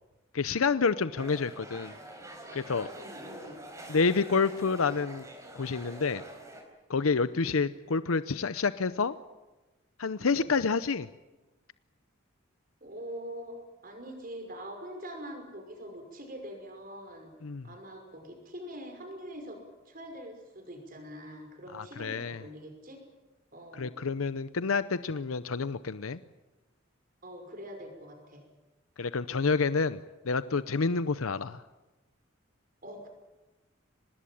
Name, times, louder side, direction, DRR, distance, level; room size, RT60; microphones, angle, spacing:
voice 1, 0.3-2.0 2.5-2.9 3.9-5.2 5.5-6.2 6.9-9.1 10.0-11.1 17.4-17.7 21.7-22.4 23.7-26.2 29.0-30.0 30.2-31.6, left 4 dB, 90° left, 14 dB, 0.7 m, -28 dB
sound 1, 1.2-6.6, right 1 dB, 15° right, 4.2 m, -46 dB
voice 2, 3.0-3.6 7.3-7.6 10.2-10.5 12.8-13.6 13.8-17.3 17.6-19.6 19.9-23.0 23.5-23.9 27.2-28.4 32.8-33.1, equal, 45° right, 4 dB, 5.7 m, -44 dB
25.5 x 20.0 x 8.7 m, 1.1 s
head